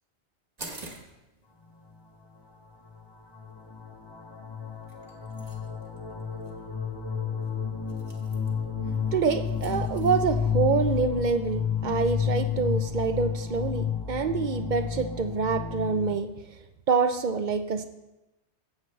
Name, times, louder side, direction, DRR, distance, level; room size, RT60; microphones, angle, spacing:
sound 1, 0.6-10.1, right 2 dB, 35° right, 1.2 m, -50 dB
sound 2, 2.9-3.0 3.3-16.2, left 7 dB, 30° left, 0.6 m, -31 dB
voice 1, 9.1-16.3 16.9-17.9, right 5 dB, 55° right, 9 dB, 0.6 m, -26 dB
13.0 x 7.7 x 3.2 m, 0.99 s
omnidirectional pair, 1.2 m